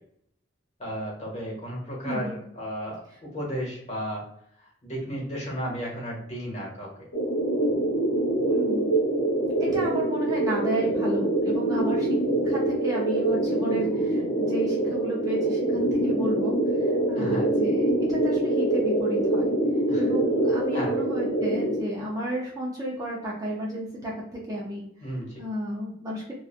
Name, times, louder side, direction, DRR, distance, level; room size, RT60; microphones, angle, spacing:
voice 1, 0.8-4.3 4.8-7.1 9.6-9.8 17.2-17.5 19.9-20.1 20.7-20.9 25.0-25.4, equal, 35° left, -4 dB, 1.1 m, -34 dB
voice 2, 2.0-2.4 8.5-8.8 9.6-12.2 12.4-19.6 20.0-24.9 25.4-26.3, equal, 20° right, -5 dB, 0.5 m, -32 dB
sound 1, 7.1-21.8, right 1 dB, 65° left, 0.6 m, -25 dB
3.0 x 2.3 x 2.4 m, 0.71 s
head